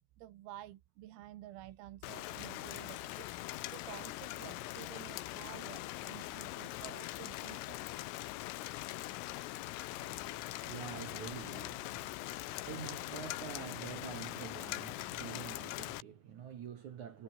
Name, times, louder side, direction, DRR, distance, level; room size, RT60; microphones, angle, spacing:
voice 1, 0.0-7.8, right 14 dB, 85° right, 4.3 m, -51 dB
Rain, 2.0-16.0, left 18 dB, 90° left, 3.6 m, -42 dB
voice 2, 9.9-17.2, right 8 dB, 60° right, 2.0 m, -47 dB
omnidirectional pair, 5.8 m